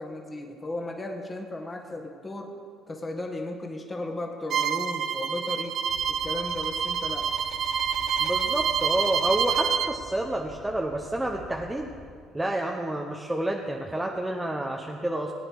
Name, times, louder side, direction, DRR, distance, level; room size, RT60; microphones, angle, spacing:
voice 1, 0.0-2.5 2.9-5.7 6.1-7.3, left 2 dB, 20° left, 2 dB, 1.9 m, -35 dB
Bowed string instrument, 4.5-9.9, right 7 dB, 60° right, 0.8 m, -27 dB
sound 1, 5.9-12.1, left 3 dB, 80° left, 2.6 m, -48 dB
voice 2, 8.2-11.9 12.3-15.3, right 1 dB, 10° right, 0 dB, 1.0 m, -29 dB
17.5 x 9.0 x 4.9 m, 2.2 s
supercardioid pair, 75°, 0 cm